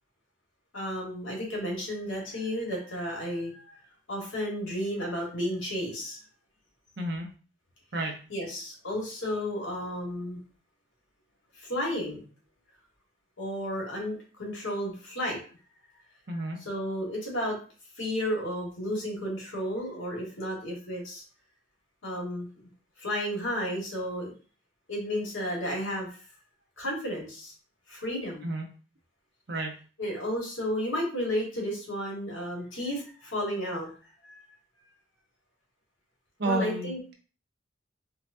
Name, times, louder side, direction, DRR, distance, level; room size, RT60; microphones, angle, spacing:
voice 1, 0.7-3.7 4.1-6.2 8.3-10.4 11.5-12.2 13.4-15.4 16.6-17.6 18.0-21.2 22.0-22.7 23.0-24.3 24.9-26.1 26.8-27.5 27.9-28.5 30.0-33.9 34.2-34.4 36.4-37.1, equal, 85° left, -2 dB, 1.5 m, -32 dB
voice 2, 7.0-7.3 7.9-8.1 16.3-16.6 28.4-28.6 29.5-29.7 36.4-37.1, right 2 dB, 60° right, 2 dB, 0.7 m, -30 dB
4.5 x 2.2 x 2.6 m, 0.38 s
head